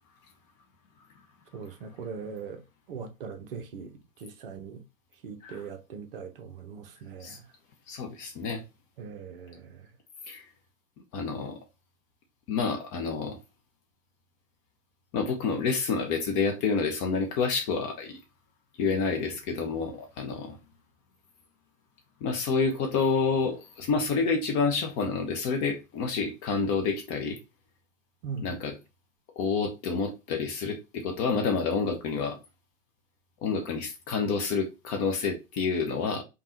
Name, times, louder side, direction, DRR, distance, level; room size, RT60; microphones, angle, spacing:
voice 1, 1.5-2.6 2.9-4.8 5.2-7.4 9.0-9.9 28.2-28.6, right 5 dB, 45° right, 0.8 m, -40 dB
voice 2, 7.9-8.6 10.3-10.4 11.1-11.6 12.5-13.4 15.1-18.2 18.8-20.6 22.2-27.4 28.4-28.8 29.4-32.4 33.4-36.2, left 5 dB, 20° left, 0.6 m, -28 dB
5.2 x 2.3 x 2.9 m
figure-of-eight pair, 110°, 41 cm